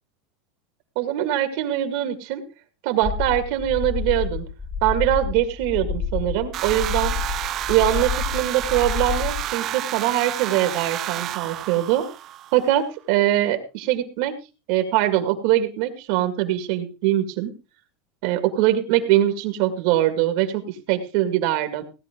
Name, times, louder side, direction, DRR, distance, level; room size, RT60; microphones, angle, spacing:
voice 1, 1.0-2.4 2.8-4.4 4.8-7.1 7.7-12.0 12.5-14.3 14.7-17.5 18.2-21.8, right 13 dB, 60° right, 8 dB, 1.9 m, -22 dB
sound 1, 3.0-9.5, left 7 dB, 15° left, 0.7 m, -29 dB
sound 2, 6.5-12.7, right 12 dB, 35° right, 0.6 m, -30 dB
17.0 x 10.0 x 3.7 m, 0.31 s
supercardioid pair, 165°, 0 cm